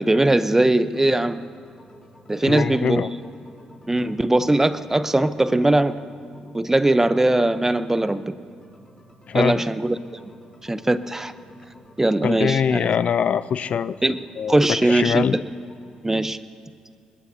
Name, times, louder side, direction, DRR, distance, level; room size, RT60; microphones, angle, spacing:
voice 1, 0.0-1.4 2.3-3.0 3.9-5.9 6.5-8.3 9.3-10.0 10.6-11.3 12.0-12.9 14.0-14.2 14.5-15.2 16.0-16.4, right 1 dB, 15° right, 13 dB, 0.8 m, -20 dB
sound 1, 0.8-16.2, left 1 dB, 35° left, 5.3 m, -50 dB
voice 2, 2.4-3.1 9.3-9.6 12.2-14.0 14.4-15.4, left 7 dB, 60° left, 16 dB, 0.4 m, -23 dB
24.5 x 20.0 x 2.8 m, 2.3 s
supercardioid pair, 55°, 3 cm